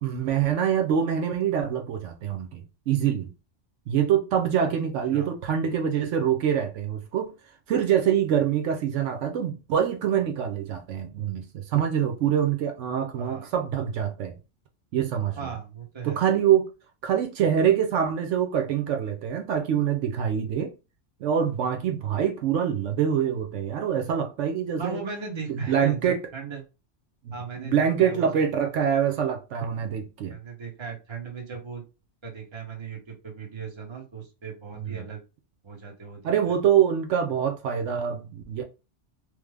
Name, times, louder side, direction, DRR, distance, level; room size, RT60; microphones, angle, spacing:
voice 1, 0.0-3.3 3.9-7.3 7.7-14.3 14.9-15.5 16.0-16.7 17.0-20.7 21.2-25.0 25.5-26.3 27.2-30.4 34.7-35.0 36.2-38.6, right 8 dB, 75° right, 0.9 m, -25 dB
voice 2, 13.2-13.5 15.4-16.2 24.8-26.6 27.3-28.4 30.2-31.8 32.2-35.2 35.6-36.3, right 6 dB, 25° right, 0.8 m, -37 dB
3.2 x 2.0 x 3.3 m
omnidirectional pair, 1.3 m